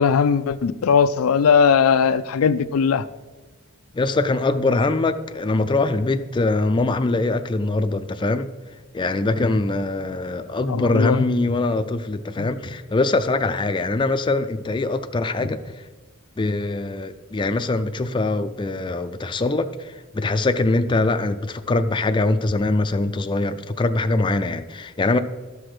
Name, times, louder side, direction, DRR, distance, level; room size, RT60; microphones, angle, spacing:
voice 1, 0.0-3.0 10.7-11.3 12.4-12.5, left 6 dB, 85° left, 0.4 m, -19 dB
voice 2, 3.9-8.5 8.9-15.8 16.4-25.2, left 2 dB, 20° left, 0.4 m, -23 dB
13.0 x 6.0 x 4.9 m
head